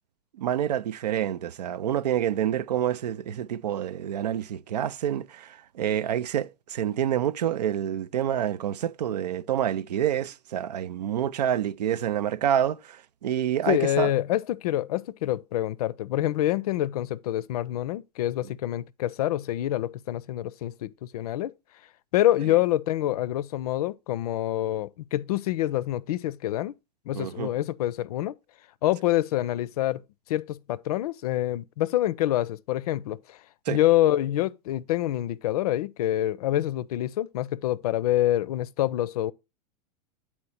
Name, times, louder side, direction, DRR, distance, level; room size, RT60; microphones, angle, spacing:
voice 1, 0.4-14.1 27.1-27.5 33.7-33.8, right 10 dB, 75° right, 0.5 m, -27 dB
voice 2, 13.7-21.5 22.1-26.7 27.1-28.4 28.8-30.0 30.3-33.4 33.7-39.3, left 14 dB, 65° left, 0.5 m, -26 dB
8.6 x 4.4 x 4.2 m
hypercardioid pair, 95°, 21 cm